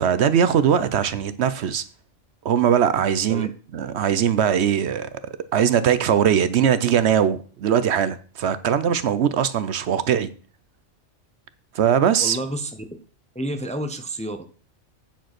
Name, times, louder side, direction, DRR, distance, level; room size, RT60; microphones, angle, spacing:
voice 1, 0.0-1.8 2.4-5.1 5.5-10.3 11.7-12.4, right 8 dB, 65° right, 0.9 m, -20 dB
voice 2, 12.2-12.8 13.3-14.4, right 1 dB, 5° left, 0.6 m, -30 dB
9.0 x 5.0 x 5.9 m
omnidirectional pair, 1.3 m